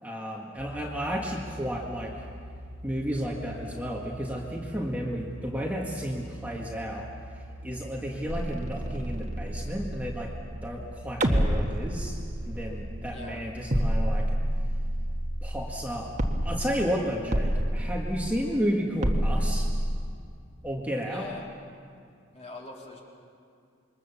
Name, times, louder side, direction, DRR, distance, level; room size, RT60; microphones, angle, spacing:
voice 1, 0.0-2.2 2.8-7.1 7.3-10.3 10.6-12.2 12.5-14.3 15.4-16.1 16.4-19.7 20.6-21.3, equal, 10° right, -2 dB, 1.8 m, -32 dB
sound 1, 0.6-16.9, equal, 90° right, 1.2 m, -43 dB
sound 2, 8.3-10.9 11.2-13.3 13.7-15.9 16.2-16.9 17.3-18.6 19.0-20.0, equal, 35° right, 1.6 m, -29 dB
voice 2, 13.1-13.4 21.1-21.5 22.3-23.0, left 3 dB, 30° left, -2 dB, 3.8 m, -43 dB
27.0 x 23.0 x 7.1 m, 2.3 s
head